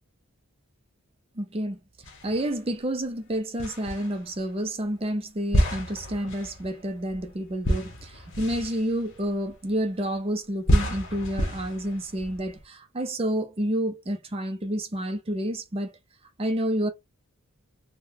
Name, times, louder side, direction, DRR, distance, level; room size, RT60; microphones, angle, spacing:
voice 1, 1.3-1.8 2.2-16.0 16.4-16.9, right 1 dB, 25° right, 0.5 m, -29 dB
sound 1, 2.0-2.8 3.6-4.5 5.5-10.0 10.6-12.6, equal, 55° left, 1.0 m, -29 dB
3.7 x 2.2 x 2.7 m
head